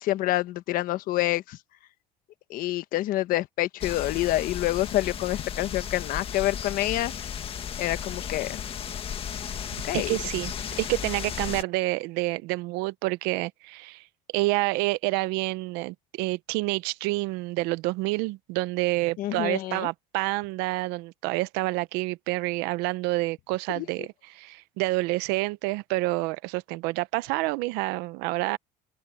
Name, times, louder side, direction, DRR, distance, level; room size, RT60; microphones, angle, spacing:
voice 1, 0.0-1.6 2.5-7.1 7.8-8.6 9.8-10.1 19.2-19.9 23.7-23.9, left 16 dB, 60° left, 1.3 m, -27 dB
sound 1, 3.8-11.6, left 8 dB, 35° left, 1.7 m, -35 dB
voice 2, 9.9-14.0 14.3-28.6, right 21 dB, 85° right, 0.9 m, -28 dB
open air
cardioid pair, 140°, 16 cm